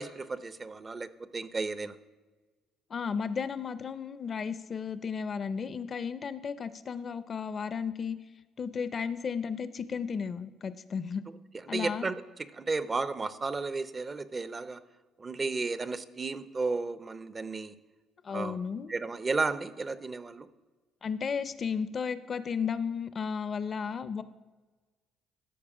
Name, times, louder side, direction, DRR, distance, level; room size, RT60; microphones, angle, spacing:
voice 1, 0.0-2.0 11.7-12.1 12.5-14.8 15.2-17.7 18.3-18.6 18.9-20.5, right 3 dB, 30° right, 13 dB, 0.6 m, -33 dB
voice 2, 2.9-8.2 8.6-11.2 11.7-12.1 18.2-18.9 21.0-24.2, left 6 dB, 45° left, 14 dB, 0.6 m, -34 dB
14.0 x 4.8 x 4.9 m, 1.3 s
supercardioid pair, 70°, 0 cm